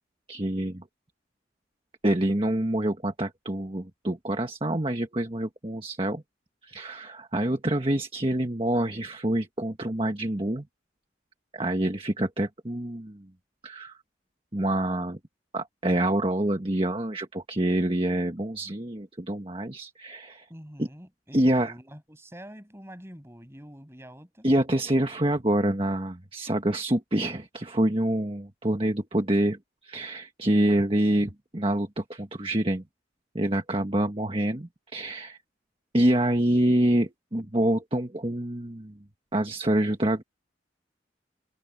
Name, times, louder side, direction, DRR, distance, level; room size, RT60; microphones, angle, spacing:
voice 1, 0.3-0.8 2.0-6.2 6.6-10.7 11.5-13.3 13.6-14.0 14.5-15.2 15.5-20.5 20.8-20.9 21.3-21.7 24.4-32.8 33.3-35.4 35.9-39.0 39.3-40.2, right 1 dB, 30° right, 1.5 m, -26 dB
voice 2, 20.5-24.5, equal, 15° right, 7.5 m, -46 dB
head